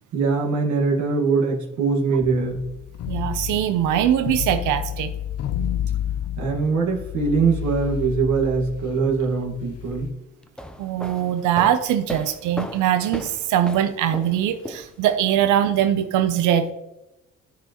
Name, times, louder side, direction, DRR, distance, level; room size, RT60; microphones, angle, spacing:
voice 1, 0.1-2.7 6.4-10.1, right 4 dB, 70° right, -1 dB, 1.7 m, -22 dB
sound 1, 2.2-10.1, left 10 dB, 55° left, 0.5 m, -30 dB
voice 2, 3.1-5.1 10.8-16.7, right 10 dB, 90° right, 8 dB, 0.6 m, -22 dB
sound 2, 10.4-15.3, equal, 5° left, 0.6 m, -36 dB
13.0 x 4.7 x 2.9 m, 0.94 s
cardioid pair, 100°, 30 cm